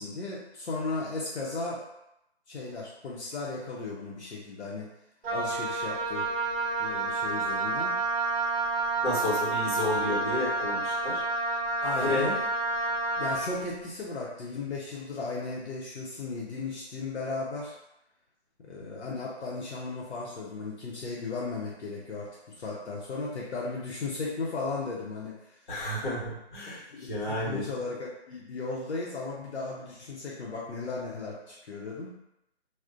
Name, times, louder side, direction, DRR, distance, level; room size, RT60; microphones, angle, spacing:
voice 1, 0.0-1.8 2.5-4.9 5.3-6.3 6.8-8.0 11.8-12.3 13.2-17.8 18.6-25.6 26.7-32.2, left 3 dB, 80° left, -4 dB, 0.7 m, -36 dB
Wind instrument woodwind instrument, 5.2-13.5, right 3 dB, 60° right, 0.5 m, -29 dB
voice 2, 9.0-11.3 11.9-12.3 25.7-27.6, left 2 dB, 45° left, -6 dB, 1.1 m, -31 dB
2.4 x 2.1 x 2.4 m, 0.85 s
hypercardioid pair, 165°, 33 cm